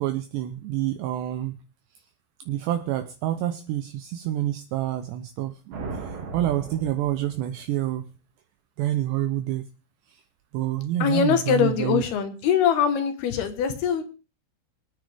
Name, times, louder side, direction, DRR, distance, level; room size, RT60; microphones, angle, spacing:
voice 1, 0.0-1.6 2.5-5.6 5.9-8.0 8.8-9.6 10.1-10.2 10.5-12.0, right 13 dB, 85° right, 8 dB, 2.4 m, -27 dB
sound 1, 5.7-7.8, right 4 dB, 45° right, 2.5 m, -37 dB
voice 2, 11.0-14.0, left 8 dB, 65° left, 8 dB, 2.7 m, -23 dB
26.0 x 9.2 x 3.5 m, 0.33 s
omnidirectional pair, 5.9 m